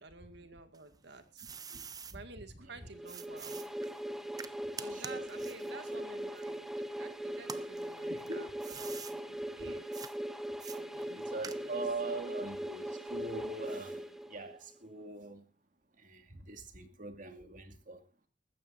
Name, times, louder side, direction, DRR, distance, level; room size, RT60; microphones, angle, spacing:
voice 1, 0.0-1.5 2.1-3.7 4.7-9.9 10.7-11.8, right 3 dB, 70° right, 2.1 m, -52 dB
sound 1, 0.7-2.2 3.1-7.0 7.4-9.2 9.9-10.1 10.6-11.9, right 6 dB, 20° right, 0.7 m, -47 dB
sound 2, 2.9-14.7, right 1 dB, ahead, 1.2 m, -40 dB
voice 2, 4.9-5.2 8.1-8.5 9.6-9.8 11.1-15.5 16.0-18.0, right 2 dB, 50° right, 2.2 m, -42 dB
19.5 x 15.0 x 2.7 m
head